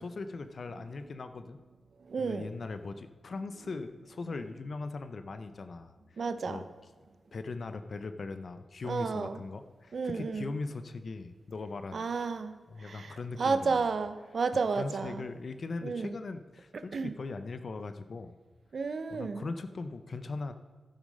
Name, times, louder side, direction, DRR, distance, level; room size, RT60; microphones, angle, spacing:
voice 1, 0.0-1.6 2.2-6.2 6.5-6.7 7.3-12.0 12.7-13.8 14.8-18.4 19.1-20.5, left 3 dB, 45° left, 9 dB, 0.5 m, -40 dB
voice 2, 2.1-2.5 6.2-6.6 8.8-9.4 9.9-10.5 11.9-12.5 12.8-15.2 15.8-16.1 16.9-17.1 18.7-19.5, right 4 dB, 50° right, 10 dB, 0.7 m, -32 dB
15.5 x 6.3 x 5.3 m, 1.5 s
wide cardioid pair, 150°, 0 cm